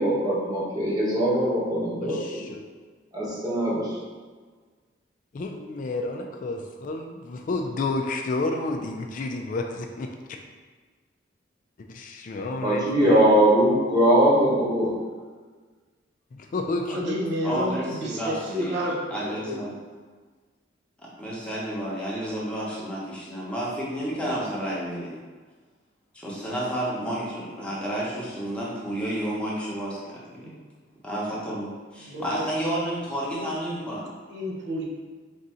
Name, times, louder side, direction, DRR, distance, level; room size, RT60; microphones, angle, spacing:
voice 1, 0.0-2.4 3.1-4.0 12.6-14.9, right 1 dB, 20° right, -6 dB, 1.1 m, -21 dB
voice 2, 1.7-2.6 5.3-10.1 11.9-13.2 16.3-17.1, left 2 dB, 45° left, 3 dB, 0.3 m, -31 dB
voice 3, 16.8-19.7 30.4-30.6 32.0-32.4 33.2-33.6 34.3-34.8, equal, 65° right, -2 dB, 0.8 m, -31 dB
voice 4, 17.4-18.8 19.1-19.7 21.2-25.2 26.1-30.5 31.0-34.1, right 1 dB, 5° left, -6 dB, 0.9 m, -31 dB
3.5 x 2.6 x 4.2 m, 1.5 s
head